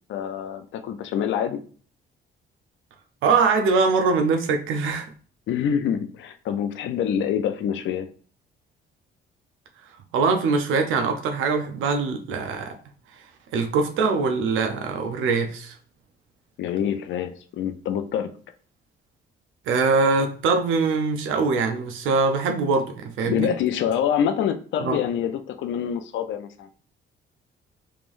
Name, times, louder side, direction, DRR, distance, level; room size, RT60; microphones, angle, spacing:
voice 1, 0.1-1.6 5.5-8.1 16.6-18.3 23.2-26.7, left 8 dB, 70° left, 0.5 m, -26 dB
voice 2, 3.2-5.1 10.1-12.8 13.5-15.8 19.7-23.5 24.8-25.0, right 4 dB, 80° right, 0.6 m, -22 dB
3.6 x 3.2 x 2.5 m
cardioid pair, 90°, 20 cm